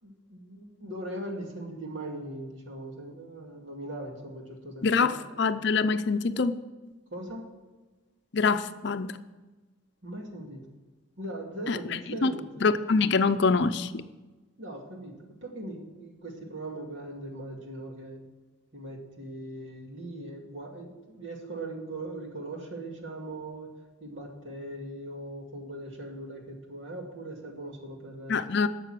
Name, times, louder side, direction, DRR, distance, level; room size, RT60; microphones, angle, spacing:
voice 1, 0.0-5.1 7.1-7.5 10.0-10.7 11.2-12.5 14.6-18.2 18.7-23.7 24.0-28.4, right 1 dB, 65° right, 1 dB, 2.3 m, -40 dB
voice 2, 4.8-5.1 5.4-6.6 8.3-9.1 11.7-11.8 12.2-12.3 12.6-14.0 28.3-28.7, left 4 dB, 55° left, 11 dB, 0.5 m, -24 dB
12.0 x 6.8 x 7.5 m, 1.2 s
head